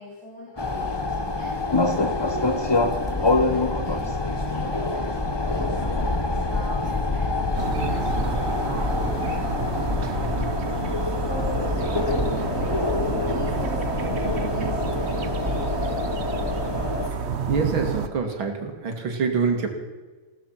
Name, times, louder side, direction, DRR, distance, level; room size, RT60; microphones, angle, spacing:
voice 1, 0.0-4.1 4.5-10.5 11.2-12.0 12.4-16.5 17.0-17.1, equal, 50° left, -5 dB, 4.3 m, -39 dB
sound 1, 0.6-17.1, left 2 dB, 25° left, 0.5 m, -26 dB
sound 2, 7.6-18.1, right 5 dB, 45° right, 0.9 m, -30 dB
voice 2, 10.2-10.5 17.5-19.7, right 5 dB, 70° right, 4 dB, 3.1 m, -26 dB
17.5 x 13.5 x 5.9 m, 1.3 s
omnidirectional pair, 2.2 m